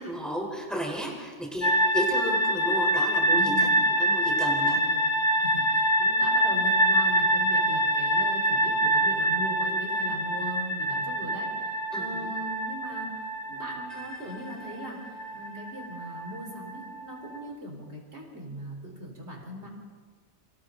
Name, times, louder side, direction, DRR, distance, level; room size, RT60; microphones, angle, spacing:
voice 1, 0.0-3.7 4.0-4.8 11.9-12.4, equal, ahead, -1 dB, 4.1 m, -33 dB
sound 1, 1.6-17.4, right 1 dB, 35° left, 1.7 m, -26 dB
voice 2, 3.3-3.9 4.2-5.1 5.4-19.7, equal, 70° right, 0 dB, 4.4 m, -40 dB
29.5 x 26.0 x 3.9 m, 1.5 s
omnidirectional pair, 1.2 m